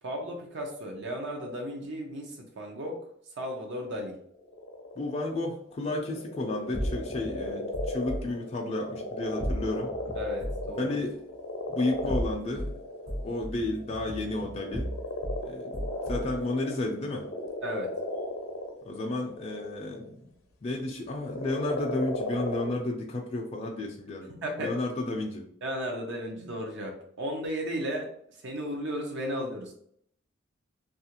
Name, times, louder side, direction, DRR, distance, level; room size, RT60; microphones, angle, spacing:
voice 1, 0.0-3.0 3.4-4.2 10.1-11.0 17.6-17.9 24.3-24.7 25.6-28.1 28.4-29.7, equal, 60° right, 1 dB, 0.5 m, -34 dB
sound 1, 4.4-5.3 5.8-20.1 21.1-22.7, left 2 dB, 80° left, 0.5 m, -36 dB
voice 2, 5.0-9.9 10.8-11.1 11.7-12.7 13.2-14.9 15.5-17.3 18.8-20.3 20.6-25.5, left 2 dB, 30° left, 0 dB, 0.4 m, -32 dB
sound 2, 6.7-8.2 9.4-10.7 11.9-12.7 13.1-15.4 15.7-16.4, equal, 80° right, 1.1 m, -35 dB
2.8 x 2.4 x 2.8 m, 0.66 s
head